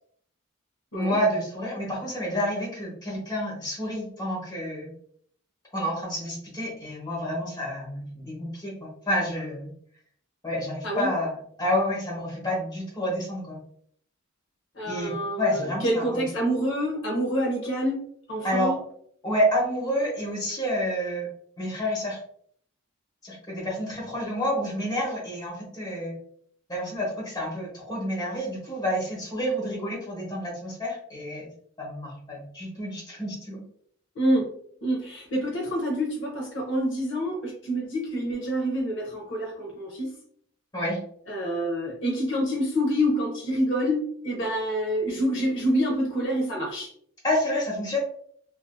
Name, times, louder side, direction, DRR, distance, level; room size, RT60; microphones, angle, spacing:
voice 1, 0.9-4.9 5.7-9.7 10.4-13.6 14.8-16.2 18.4-18.8 19.2-21.3 21.6-22.2 23.2-26.1 26.7-31.5 31.8-33.6 40.7-41.0 47.2-48.0, equal, 20° left, -4 dB, 1.0 m, -29 dB
voice 2, 14.8-15.5 15.8-18.0 18.3-18.7 34.2-34.5 34.8-40.1 41.3-46.9, equal, 60° left, -1 dB, 0.7 m, -27 dB
2.5 x 2.5 x 2.2 m, 0.63 s
head